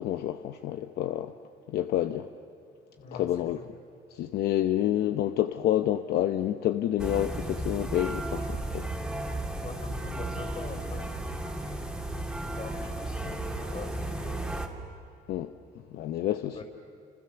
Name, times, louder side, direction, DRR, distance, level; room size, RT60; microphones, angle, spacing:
voice 1, 0.0-1.3 1.7-2.3 3.1-3.6 4.1-8.9 15.3-15.5 15.9-16.6, left 12 dB, 70° left, 0.8 m, -28 dB
voice 2, 3.0-3.7 9.5-14.6 16.5-16.6, left 3 dB, 40° left, 5.8 m, -44 dB
sound 1, 7.0-14.7, right 1 dB, 5° right, 2.5 m, -34 dB
29.0 x 27.0 x 7.0 m
cardioid pair, 110°, 17 cm